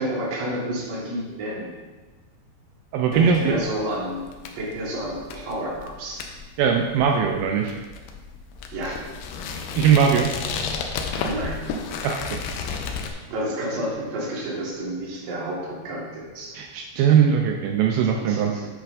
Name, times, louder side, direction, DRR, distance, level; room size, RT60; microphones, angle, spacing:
voice 1, 0.0-1.7 3.1-4.3 4.5-6.2 8.7-9.0 11.2-11.6 13.3-16.6 18.2-18.7, right 1 dB, 55° right, -5 dB, 2.1 m, -30 dB
voice 2, 2.9-3.5 6.6-7.7 9.8-10.3 12.0-12.4 16.5-18.5, right 7 dB, 85° right, 2 dB, 2.1 m, -20 dB
sound 1, 3.1-13.1, left 5 dB, 80° left, 2.4 m, -33 dB
9.9 x 5.7 x 2.5 m, 1.2 s
omnidirectional pair, 4.7 m